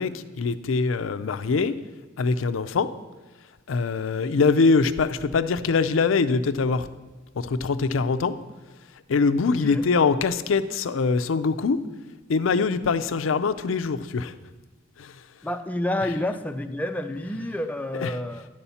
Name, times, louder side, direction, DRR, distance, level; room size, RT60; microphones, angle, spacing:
voice 1, 0.0-1.7 2.2-2.9 3.7-6.9 7.4-8.3 9.1-11.8 12.3-14.3 15.0-15.2 17.9-18.1, left 4 dB, 85° left, 12 dB, 0.5 m, -23 dB
voice 2, 9.4-9.9 15.4-18.5, left 1 dB, 10° left, 7 dB, 0.4 m, -29 dB
10.5 x 4.2 x 7.0 m, 1.2 s
head